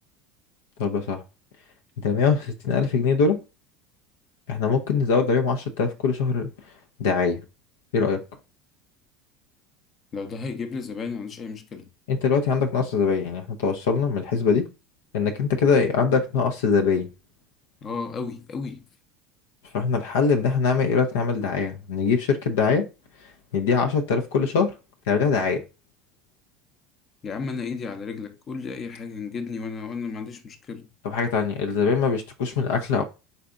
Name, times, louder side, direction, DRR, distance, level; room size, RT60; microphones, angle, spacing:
voice 1, 0.8-1.2 2.0-3.4 4.5-6.5 7.0-7.4 7.9-8.2 12.1-14.7 15.1-17.1 19.7-22.8 23.2-24.7 25.1-25.6 31.0-33.0, left 5 dB, 80° left, 0.6 m, -23 dB
voice 2, 10.1-11.9 17.8-18.8 27.2-30.9, left 4 dB, 40° left, 0.7 m, -33 dB
4.0 x 3.3 x 2.5 m
hypercardioid pair, 90°, 0 cm